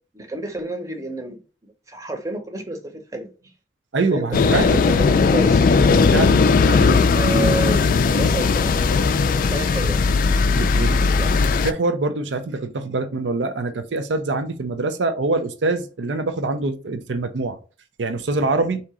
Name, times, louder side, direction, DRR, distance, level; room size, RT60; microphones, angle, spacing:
voice 1, 0.1-3.3 4.1-5.7 6.7-9.0 9.4-10.1 10.8-11.3, right 2 dB, 20° right, 0.8 m, -30 dB
voice 2, 3.9-4.8 6.1-6.4 6.7-7.0 10.6-10.9 11.6-17.6 18.0-18.8, right 3 dB, 85° right, 0.5 m, -24 dB
sound 1, 4.3-11.7, left 4 dB, 50° left, 0.3 m, -17 dB
3.6 x 2.8 x 4.7 m
head